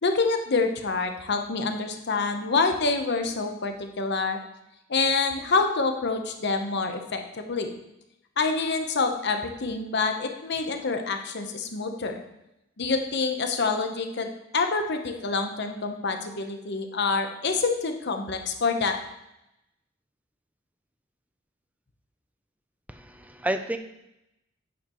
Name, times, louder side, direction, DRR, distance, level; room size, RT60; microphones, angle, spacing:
voice 1, 0.0-4.4 4.9-7.7 8.4-12.2 12.8-19.0, left 4 dB, 60° left, 5 dB, 0.9 m, -27 dB
voice 2, 22.9-23.8, right 1 dB, 10° right, 7 dB, 0.5 m, -30 dB
9.3 x 6.8 x 3.1 m, 0.86 s
head